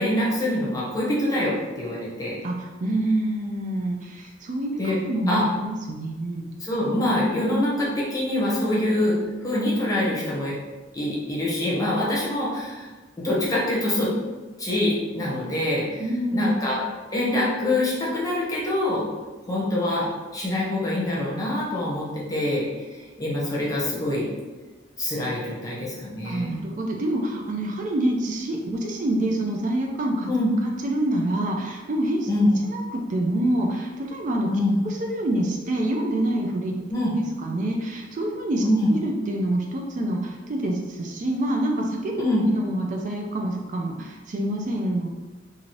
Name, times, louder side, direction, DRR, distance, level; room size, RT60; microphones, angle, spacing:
voice 1, 0.0-2.4 4.8-5.0 5.3-5.4 6.6-10.6 10.9-12.9 13.2-14.1 14.6-16.0 16.3-16.8 17.1-19.1 19.5-20.1 20.3-22.7 22.9-24.3 25.0-26.6 30.3-30.5 32.3-32.5 34.5-34.8 36.9-37.1 38.6-39.0 42.2-42.5, left 1 dB, 20° left, -5 dB, 0.7 m, -25 dB
voice 2, 2.4-6.5 16.0-16.5 26.2-30.3 30.6-32.3 32.7-34.5 35.0-36.7 37.4-38.6 38.9-45.1, right 1 dB, 40° right, 1 dB, 0.3 m, -26 dB
2.7 x 2.5 x 3.0 m, 1.3 s
head